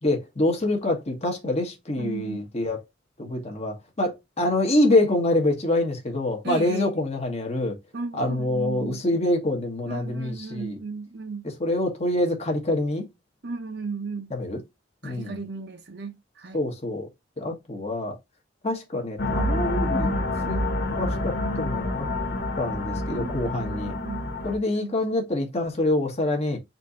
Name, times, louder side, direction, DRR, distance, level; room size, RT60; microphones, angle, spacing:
voice 1, 0.0-2.8 3.2-7.8 8.1-10.8 11.6-13.1 14.3-14.6 15.0-15.4 16.5-17.1 17.4-18.2 18.6-20.1 20.5-20.7 20.9-22.1 22.6-23.9 24.4-26.6, left 1 dB, 35° left, 1.2 m, -26 dB
voice 2, 2.0-2.4 6.4-6.9 7.9-9.0 9.8-11.4 13.4-14.3 15.0-16.6 23.1-24.3 24.7-25.0, right 4 dB, 60° right, 0.7 m, -35 dB
sound 1, 19.2-24.6, left 1 dB, 60° left, 0.8 m, -27 dB
4.3 x 2.7 x 4.0 m
head